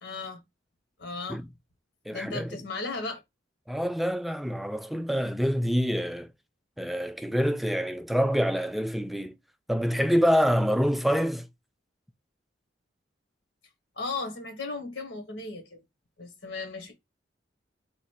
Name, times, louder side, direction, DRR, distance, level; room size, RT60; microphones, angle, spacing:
voice 1, 0.0-0.4 1.0-1.4 2.1-3.2 14.0-15.8 16.2-16.9, left 3 dB, 70° left, 1.6 m, -36 dB
voice 2, 2.1-2.6 3.7-6.3 6.8-9.4 9.7-11.5, equal, ahead, 0.3 m, -26 dB
4.0 x 2.7 x 4.6 m
head